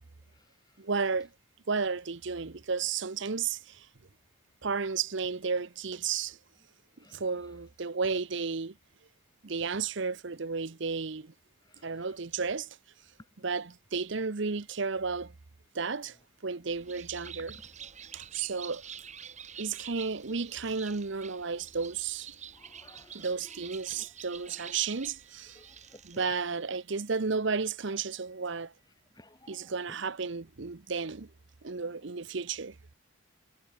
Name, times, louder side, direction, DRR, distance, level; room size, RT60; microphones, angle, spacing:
voice 1, 0.8-1.3 1.7-3.9 4.6-6.4 7.1-8.7 9.4-11.3 11.8-15.3 15.7-16.2 16.4-17.6 18.1-18.8 19.6-22.4 23.1-25.6 26.0-28.7 29.5-31.3 31.6-32.8, right 5 dB, 55° right, 0.8 m, -33 dB
voice 2, 11.7-12.1 22.6-23.3 23.9-24.1 24.7-24.8 25.6-25.7 25.9-26.2 29.2-29.7, left 1 dB, 20° left, 3.7 m, -56 dB
Bird, 16.7-26.4, right 8 dB, 35° right, 4.1 m, -48 dB
head